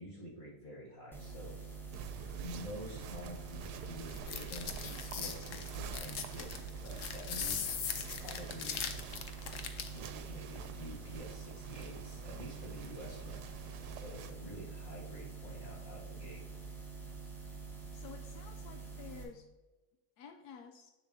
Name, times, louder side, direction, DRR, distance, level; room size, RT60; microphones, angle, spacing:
voice 1, 0.0-1.7 2.4-8.8 9.8-13.4 13.9-16.4, equal, 30° left, -5 dB, 2.2 m, -48 dB
sound 1, 1.1-19.2, right 4 dB, ahead, 1.0 m, -46 dB
sound 2, 1.9-14.3, right 7 dB, 90° right, 1.1 m, -48 dB
sound 3, 4.1-10.0, left 8 dB, 65° left, 1.0 m, -40 dB
voice 2, 17.9-19.4 20.2-20.9, left 6 dB, 85° left, 5 dB, 1.2 m, -51 dB
7.6 x 6.8 x 2.7 m, 1.1 s
omnidirectional pair, 1.7 m